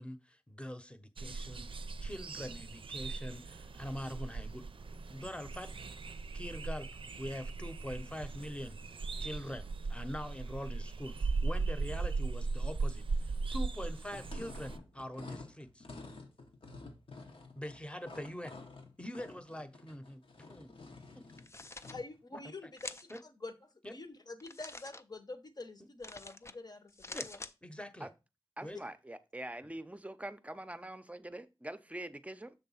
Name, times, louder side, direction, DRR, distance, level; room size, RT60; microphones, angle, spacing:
voice 1, 0.0-5.7 6.3-6.9 7.2-8.8 9.2-15.9 17.6-18.6 19.0-20.2 20.5-20.7 21.1-21.2 21.8-21.9 23.1-23.2 23.8-23.9 27.1-27.3 27.6-28.1 28.6-28.8, equal, 10° left, 0.8 m, -44 dB
sound 1, 1.2-14.8, right 3 dB, 75° right, 0.5 m, -38 dB
sound 2, 14.1-22.2, left 3 dB, 85° left, 1.1 m, -50 dB
sound 3, 21.3-21.9 22.8-23.2 24.4-25.0 26.0-26.5 26.9-27.5, left 2 dB, 30° left, 0.4 m, -46 dB
voice 2, 21.9-27.4, left 3 dB, 50° left, 0.9 m, -47 dB
voice 3, 28.6-32.5, right 1 dB, 15° right, 0.6 m, -44 dB
7.1 x 3.4 x 5.6 m
wide cardioid pair, 80°, 9 cm